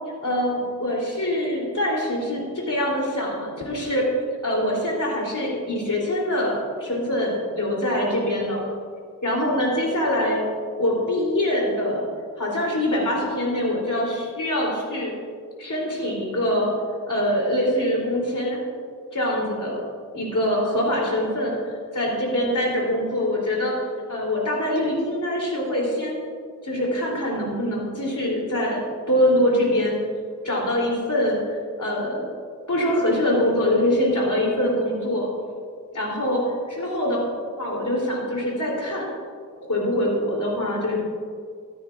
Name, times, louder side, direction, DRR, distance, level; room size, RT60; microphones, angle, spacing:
voice 1, 0.2-4.0 4.4-8.6 9.2-10.4 10.8-12.1 12.4-15.1 15.6-16.7 17.1-18.6 19.1-19.8 20.1-23.7 24.1-26.2 26.6-30.0 30.4-32.2 32.7-35.3 35.9-36.4 36.7-37.2 37.6-39.1 39.7-41.0, left 1 dB, 70° left, -3 dB, 3.3 m, -24 dB
14.5 x 13.0 x 2.5 m, 2.1 s
wide cardioid pair, 55°, 32 cm